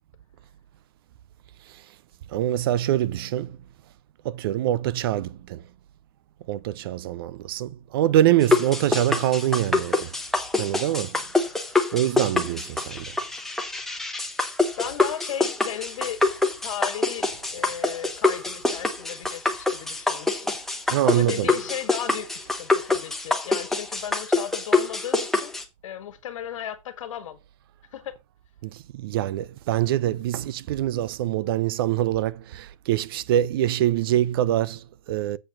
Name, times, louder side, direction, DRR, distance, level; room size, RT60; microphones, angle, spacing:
voice 1, 2.3-3.6 4.2-5.6 6.5-10.1 10.6-11.2 11.9-13.2 20.9-21.5 28.6-35.4, right 12 dB, 45° right, 0.4 m, -24 dB
sound 1, 8.4-25.6, left 3 dB, ahead, 0.8 m, -25 dB
voice 2, 14.8-16.2 16.6-25.6 25.8-27.4 27.9-28.2, left 10 dB, 70° left, 1.8 m, -35 dB
7.8 x 4.7 x 5.8 m
supercardioid pair, 160°, 17 cm